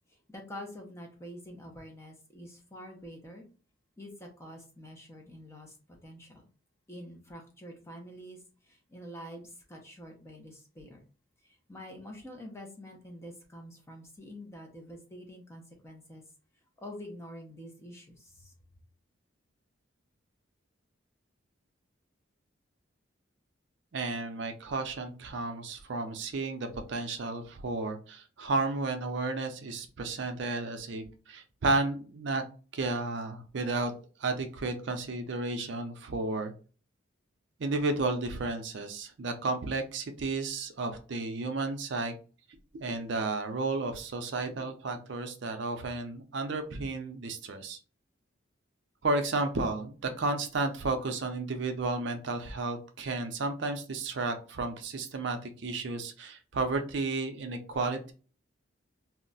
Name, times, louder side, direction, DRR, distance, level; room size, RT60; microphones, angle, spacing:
voice 1, 0.3-3.4 4.0-5.8 6.0-6.5 6.9-11.0 11.4-16.2 16.8-18.5, equal, 15° left, 1 dB, 0.5 m, -46 dB
voice 2, 23.9-32.4 32.7-33.9 34.2-36.5 37.6-42.1 42.7-47.8 49.0-58.1, right 3 dB, 65° right, 6 dB, 0.5 m, -32 dB
2.3 x 2.1 x 3.8 m, 0.37 s
head